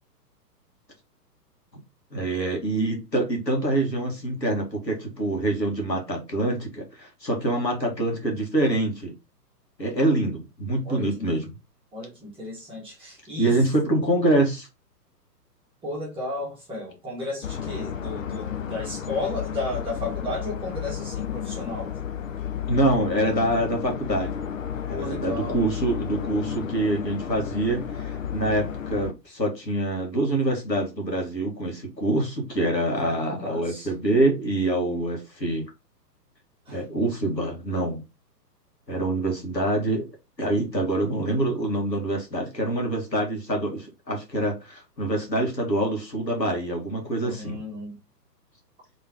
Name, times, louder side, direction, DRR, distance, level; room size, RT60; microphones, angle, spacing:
voice 1, 2.1-9.1 9.8-11.5 13.4-14.7 22.7-24.5 24.9-35.7 36.7-38.0 38.9-40.1 40.4-47.6, right 1 dB, 85° left, 1.8 m, -25 dB
voice 2, 10.8-11.3 11.9-13.6 15.8-22.0 24.9-25.7 33.0-33.9 36.7-36.8 47.2-47.9, left 2 dB, 10° right, 1.5 m, -34 dB
sound 1, 17.4-29.1, left 8 dB, 50° left, 0.8 m, -32 dB
3.6 x 3.6 x 3.0 m
figure-of-eight pair, 120°, 49 cm